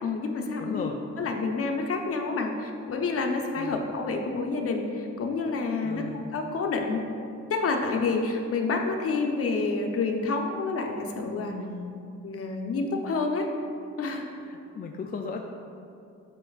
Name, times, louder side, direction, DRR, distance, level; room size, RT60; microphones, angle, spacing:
voice 1, 0.0-0.9 1.2-6.0 6.3-7.0 7.5-11.6 12.2-13.5 14.0-14.3, left 3 dB, 50° left, 3 dB, 0.8 m, -28 dB
voice 2, 0.6-1.0 3.6-3.8 5.8-6.2 11.4-12.0 14.5-15.4, left 5 dB, 30° left, 2 dB, 0.4 m, -36 dB
7.5 x 5.3 x 2.4 m, 2.5 s
cardioid pair, 90°, 30 cm